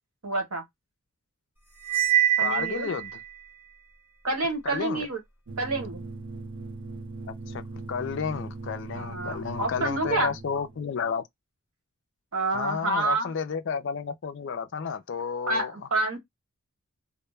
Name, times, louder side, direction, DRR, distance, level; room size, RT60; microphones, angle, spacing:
voice 1, 0.2-0.6 2.4-2.9 4.2-5.2 5.6-6.0 8.9-10.3 12.3-13.3 15.5-16.2, right 2 dB, 85° right, 1.1 m, -28 dB
Cymbal, 1.8-3.3, right 11 dB, 10° right, 0.8 m, -24 dB
voice 2, 2.4-3.1 4.6-5.1 7.3-7.6 7.9-11.2 12.5-15.9, left 6 dB, 55° left, 0.4 m, -32 dB
sound 1, 5.5-10.8, right 3 dB, 60° right, 0.6 m, -39 dB
2.1 x 2.1 x 3.1 m
head